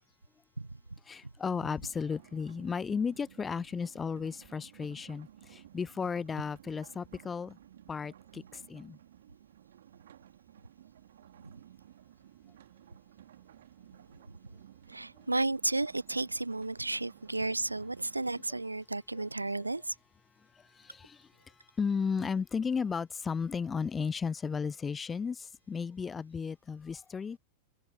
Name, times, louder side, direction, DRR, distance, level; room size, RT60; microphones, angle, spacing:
voice 1, 1.1-7.6 7.9-9.0 20.8-21.3 21.8-27.4, left 6 dB, 15° left, 0.3 m, -34 dB
sound 1, 1.8-18.6, right 11 dB, 60° right, 3.2 m, -56 dB
voice 2, 14.9-19.9, right 2 dB, 85° right, 0.4 m, -33 dB
open air
figure-of-eight pair, 90°, 0 cm